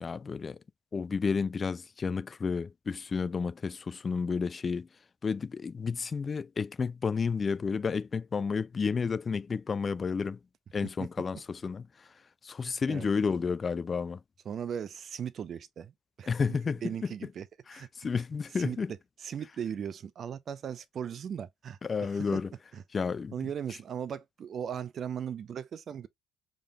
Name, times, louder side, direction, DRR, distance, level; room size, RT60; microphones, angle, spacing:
voice 1, 0.0-0.6 0.9-4.9 5.2-10.4 10.7-12.1 12.4-14.2 16.3-16.8 17.7-18.9 21.8-22.5 22.9-23.3, left 5 dB, 35° left, 0.3 m, -31 dB
voice 2, 12.6-13.1 14.5-17.5 17.7-17.9 18.6-18.8 19.2-22.4 22.7-22.8 23.3-26.1, right 8 dB, 45° right, 0.6 m, -38 dB
5.0 x 3.7 x 2.3 m
hypercardioid pair, 65°, 0 cm